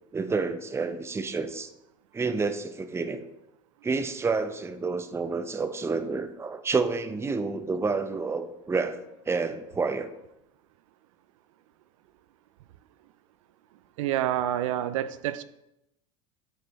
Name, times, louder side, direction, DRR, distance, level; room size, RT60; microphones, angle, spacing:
voice 1, 0.1-1.7 2.1-3.2 3.8-9.0 9.3-10.1, right 4 dB, 15° right, 10 dB, 0.6 m, -29 dB
voice 2, 14.0-15.4, right 12 dB, 80° right, 14 dB, 0.4 m, -28 dB
7.9 x 5.3 x 4.1 m, 0.88 s
hypercardioid pair, 95°, 17 cm